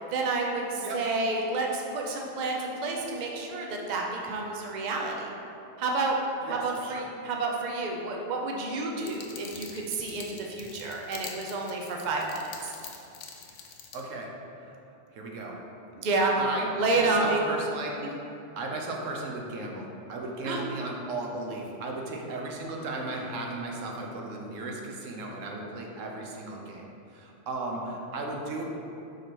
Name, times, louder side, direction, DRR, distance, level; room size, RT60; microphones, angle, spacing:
voice 1, 0.1-5.3 5.8-6.2 6.5-12.7 16.0-16.3 16.8-17.4 20.4-20.6, right 3 dB, 45° right, 0 dB, 0.7 m, -29 dB
voice 2, 6.4-7.1 13.9-14.3 14.6-14.7 15.1-15.6 16.4-18.0 18.3-26.9 27.1-28.6, right 2 dB, 85° right, 0 dB, 1.1 m, -35 dB
sound 1, 9.0-14.0, left 6 dB, 75° left, 0.9 m, -45 dB
4.9 x 4.7 x 4.4 m, 2.8 s
omnidirectional pair, 1.3 m